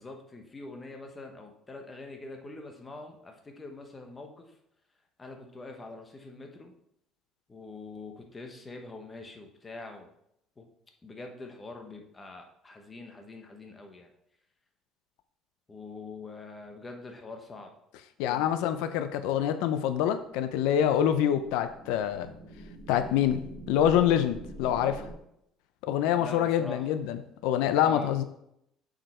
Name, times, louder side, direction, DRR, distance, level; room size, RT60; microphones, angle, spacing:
voice 1, 0.0-4.5 5.2-6.7 7.5-10.1 10.6-10.7 11.0-14.1 15.7-17.7 18.2-18.5 26.1-26.9 27.8-28.1, left 3 dB, 15° left, 3 dB, 1.0 m, -44 dB
voice 2, 18.2-22.3 22.9-25.1 25.8-28.2, left 10 dB, 90° left, 9 dB, 0.5 m, -26 dB
sound 1, 20.3-25.1, right 1 dB, 25° right, 2.0 m, -45 dB
7.5 x 5.0 x 4.4 m, 0.76 s
cardioid pair, 160°, 0 cm